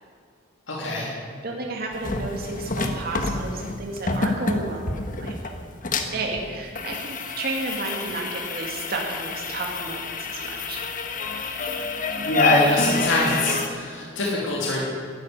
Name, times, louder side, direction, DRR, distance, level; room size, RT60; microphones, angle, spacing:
voice 1, 0.7-1.1 5.9-6.1 12.2-14.8, left 2 dB, 75° left, -3 dB, 2.9 m, -23 dB
voice 2, 1.4-5.5 5.8-10.8, right 3 dB, 50° right, 0 dB, 2.1 m, -32 dB
sound 1, 1.9-13.7, left 3 dB, 45° left, 1.4 m, -28 dB
12.5 x 11.5 x 9.9 m, 2.2 s
head